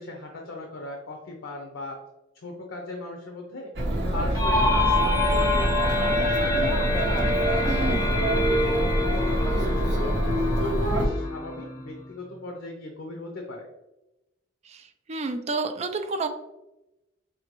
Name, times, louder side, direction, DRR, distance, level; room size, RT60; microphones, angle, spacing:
voice 1, 0.0-2.0 2.4-3.7 4.1-6.8 7.6-13.7, left 2 dB, 85° left, 1 dB, 0.6 m, -38 dB
Chatter, 3.8-11.1, right 1 dB, 60° right, 0.8 m, -25 dB
sound 1, 4.3-12.0, left 2 dB, 20° left, 0.9 m, -26 dB
voice 2, 7.7-8.2 14.7-14.8 15.1-16.3, right 3 dB, 35° right, 5 dB, 0.4 m, -30 dB
4.9 x 2.2 x 3.0 m, 0.93 s
head